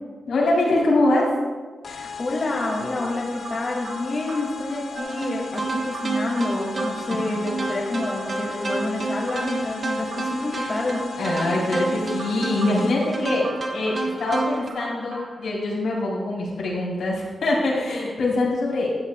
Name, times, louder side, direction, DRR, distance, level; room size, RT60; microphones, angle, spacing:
voice 1, 0.3-1.3 7.4-7.5 10.5-10.7 11.2-13.4 13.7-19.0, left 2 dB, 90° left, -4 dB, 4.3 m, -23 dB
sound 1, 1.8-13.2, left 7 dB, 65° left, 1.3 m, -38 dB
voice 2, 1.9-11.0, left 2 dB, 35° left, -3 dB, 2.7 m, -28 dB
sound 2, 2.6-15.5, right 2 dB, 80° right, 3.3 m, -40 dB
sound 3, 5.0-14.7, right 3 dB, 45° right, 1.6 m, -30 dB
16.5 x 13.5 x 2.5 m, 1.4 s
wide cardioid pair, 120°, 0 cm